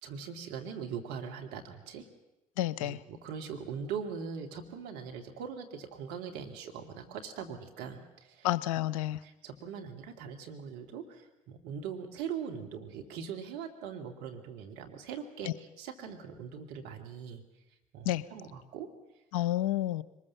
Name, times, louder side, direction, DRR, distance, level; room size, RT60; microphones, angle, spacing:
voice 1, 0.0-2.1 2.8-8.5 9.2-17.4 17.9-18.9, right 7 dB, 70° right, 3 dB, 2.6 m, -41 dB
voice 2, 2.6-3.0 8.4-9.2 15.4-15.5 18.0-18.2 19.3-20.0, left 14 dB, 80° left, 18 dB, 0.7 m, -30 dB
23.0 x 20.5 x 7.2 m, 0.97 s
hypercardioid pair, 55°, 18 cm